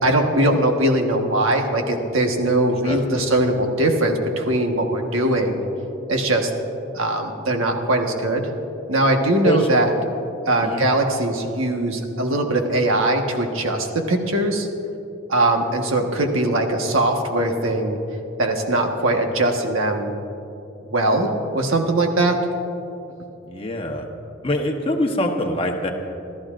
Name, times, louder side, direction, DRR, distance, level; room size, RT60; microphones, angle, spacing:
voice 1, 0.0-5.6 6.1-6.5 6.9-8.5 8.9-9.9 10.5-14.7 15.3-18.0 18.4-20.2 20.8-22.4, right 1 dB, 80° right, 3 dB, 1.4 m, -21 dB
voice 2, 2.8-3.3 9.4-9.7 10.6-10.8 23.5-24.1 24.4-25.9, left 1 dB, 25° left, 2 dB, 1.1 m, -24 dB
27.0 x 13.5 x 2.5 m, 2.8 s
head